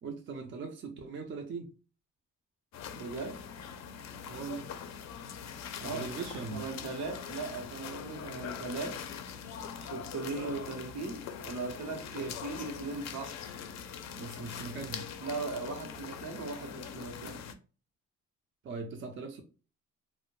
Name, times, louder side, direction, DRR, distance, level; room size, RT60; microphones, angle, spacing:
voice 1, 0.0-1.7 4.3-4.7 5.8-6.6 12.2-12.4 14.2-15.1 18.6-19.4, right 4 dB, 40° right, 0.5 m, -40 dB
sound 1, 2.7-17.5, left 7 dB, 60° left, 0.4 m, -42 dB
voice 2, 2.9-3.4 5.8-9.1 9.8-13.5 15.2-17.4, right 3 dB, 70° right, 0.8 m, -39 dB
2.1 x 2.1 x 3.0 m
cardioid pair, 90°, 30 cm